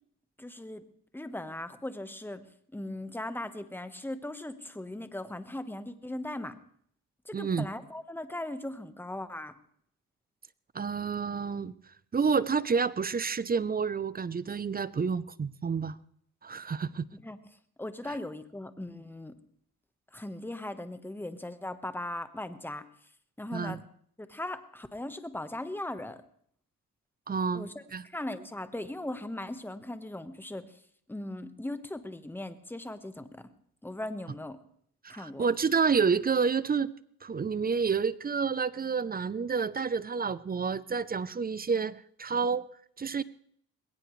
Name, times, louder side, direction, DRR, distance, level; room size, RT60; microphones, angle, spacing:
voice 1, 0.4-0.8 1.1-2.4 2.7-6.6 7.2-9.5 17.1-17.4 17.8-19.3 20.1-22.9 23.4-23.8 24.2-26.2 27.5-27.7 28.0-30.7 31.1-33.4 33.8-34.6 35.1-35.5, left 1 dB, 5° left, 10 dB, 1.3 m, -38 dB
voice 2, 7.3-7.7 10.7-11.8 12.1-16.0 16.4-17.0 18.1-18.2 23.5-23.8 27.3-28.0 35.0-36.9 37.2-42.6 43.0-43.2, right 5 dB, 25° right, 18 dB, 0.6 m, -29 dB
20.5 x 17.5 x 3.2 m, 0.62 s
cardioid pair, 85°, 33 cm